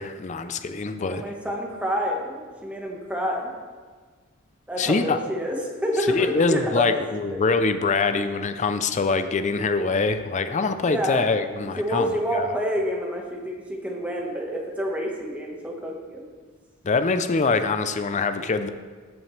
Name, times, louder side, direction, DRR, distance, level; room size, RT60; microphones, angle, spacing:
voice 1, 0.0-1.3 4.8-5.2 6.1-12.5 16.8-18.7, left 4 dB, 35° left, 10 dB, 0.4 m, -24 dB
voice 2, 1.0-3.5 4.7-7.0 7.3-7.4 8.1-8.2 10.8-11.2 11.6-16.2, equal, 5° right, -1 dB, 1.2 m, -28 dB
15.0 x 6.1 x 3.2 m, 1.5 s
head